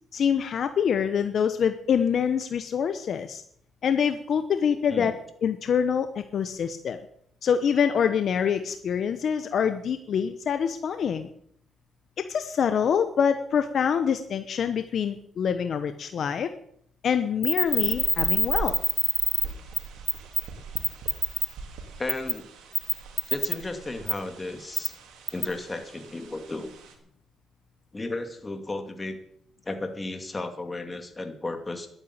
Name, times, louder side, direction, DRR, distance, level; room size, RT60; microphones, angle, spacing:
voice 1, 0.1-3.4 3.8-5.1 5.4-7.0 7.4-11.3 12.3-16.5 17.0-18.8, left 7 dB, 60° left, 9 dB, 1.0 m, -25 dB
sound 1, 17.4-19.5 19.8-19.9 20.1-20.4 20.8-21.5 22.1-22.3 22.7-23.6 24.1-24.2 24.8-24.9 25.3-25.4, equal, ahead, 1.2 m, -24 dB
sound 2, 17.6-26.9, right 5 dB, 90° right, 2.8 m, -42 dB
voice 2, 22.0-22.4 23.3-25.0 25.3-26.7 27.9-29.2 29.6-31.9, left 2 dB, 20° left, 6 dB, 2.5 m, -34 dB
12.0 x 9.3 x 8.7 m, 0.68 s
cardioid pair, 90°, 0 cm